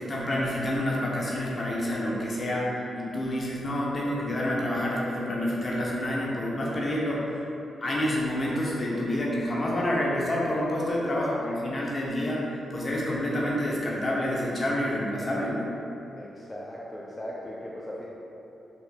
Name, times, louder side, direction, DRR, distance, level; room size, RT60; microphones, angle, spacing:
voice 1, 0.0-7.4 7.8-15.7, left 1 dB, 45° left, -5 dB, 0.8 m, -28 dB
voice 2, 16.1-18.1, equal, 20° left, -6 dB, 0.5 m, -39 dB
4.3 x 2.7 x 2.3 m, 2.9 s
supercardioid pair, 45°, 0 cm